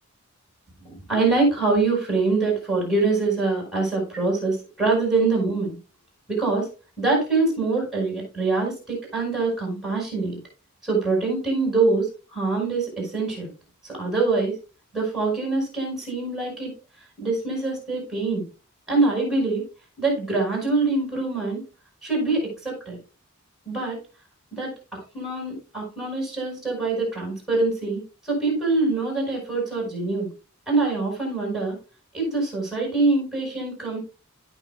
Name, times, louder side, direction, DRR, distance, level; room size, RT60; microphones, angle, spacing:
voice 1, 0.8-5.8 6.3-6.7 7.0-10.4 10.8-13.5 13.8-14.5 14.9-16.7 17.2-18.4 18.9-19.6 20.0-21.6 22.0-23.0 23.7-24.0 24.6-24.7 25.1-30.3 30.7-31.8 32.1-34.0, right 3 dB, ahead, -2 dB, 5.6 m, -24 dB
16.0 x 6.3 x 2.4 m, 0.32 s
head